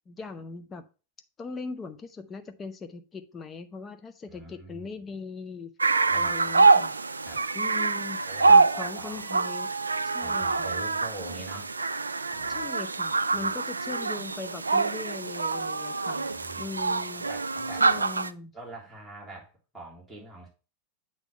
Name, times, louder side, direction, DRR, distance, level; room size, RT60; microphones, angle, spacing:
voice 1, 0.1-0.8 1.4-5.7 6.1-6.9 7.5-9.7 10.1-10.7 12.5-16.3 16.6-17.3 17.8-18.5, left 4 dB, 20° left, 8 dB, 0.8 m, -40 dB
voice 2, 4.3-5.1 6.1-6.4 7.2-7.4 8.2-9.2 10.2-11.7 12.3-12.7 13.3-13.5 16.3-16.8 17.1-18.1 18.5-20.5, right 2 dB, ahead, -6 dB, 3.2 m, -44 dB
sound 1, 5.8-18.3, right 3 dB, 80° right, 0.3 m, -25 dB
8.1 x 3.2 x 5.4 m, 0.33 s
figure-of-eight pair, 90°, 0 cm